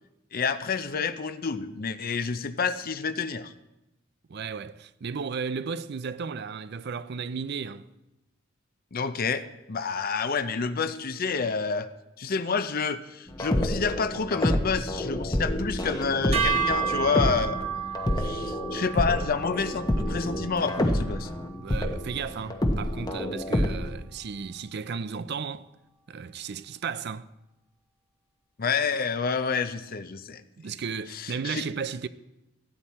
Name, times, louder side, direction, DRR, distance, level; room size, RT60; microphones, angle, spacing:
voice 1, 0.3-3.5 8.9-11.9 12.2-17.6 18.2-21.3 28.6-30.4 31.1-31.7, left 5 dB, 45° left, 0.6 m, -29 dB
voice 2, 4.3-7.9 21.6-25.7 26.1-27.3 30.6-32.1, right 5 dB, 55° right, 0.5 m, -34 dB
sound 1, 13.3-23.9, left 1 dB, 20° left, 0.9 m, -28 dB
sound 2, 16.3-22.7, right 6 dB, 30° right, 0.9 m, -33 dB
14.5 x 9.2 x 4.2 m
head